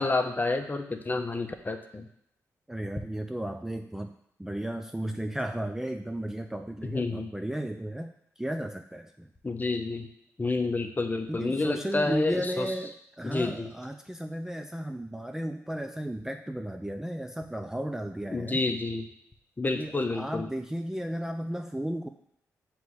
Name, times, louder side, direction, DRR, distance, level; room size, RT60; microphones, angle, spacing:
voice 1, 0.0-2.1 6.9-7.3 9.4-10.1 10.4-12.7 13.2-13.7 18.3-19.0 19.6-20.5, left 3 dB, 30° left, 6 dB, 0.7 m, -29 dB
voice 2, 2.7-4.1 4.4-8.1 8.4-9.3 11.3-18.6 19.7-22.1, right 1 dB, 5° right, 5 dB, 0.4 m, -34 dB
6.7 x 3.1 x 4.8 m, 0.71 s
supercardioid pair, 50°, 6 cm